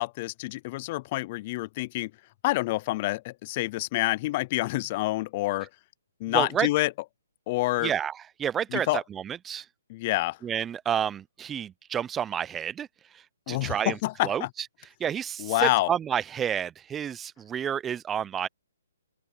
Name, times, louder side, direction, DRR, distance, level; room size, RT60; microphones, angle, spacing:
voice 1, 0.0-2.1 2.4-5.7 6.2-6.9 7.5-7.9 8.7-9.0 9.9-10.4 13.5-14.5 15.4-15.9, left 19 dB, 35° left, 0.6 m, -27 dB
voice 2, 6.3-6.7 7.8-9.7 10.4-12.9 13.1-14.5 15.0-18.5, right 9 dB, 15° right, 0.6 m, -30 dB
open air
hypercardioid pair, 150°, 0 cm